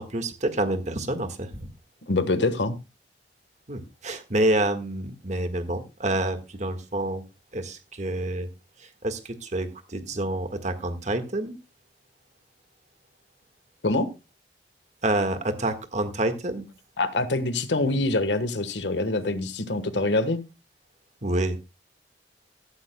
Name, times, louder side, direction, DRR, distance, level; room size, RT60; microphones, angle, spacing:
voice 1, 0.0-1.7 3.7-7.2 7.5-8.5 8.8-11.5 15.0-16.7 21.2-21.6, right 1 dB, 40° right, 1.6 m, -28 dB
voice 2, 2.1-2.8 13.8-14.1 17.0-20.4, left 2 dB, 80° left, 1.3 m, -25 dB
15.0 x 13.0 x 2.2 m
head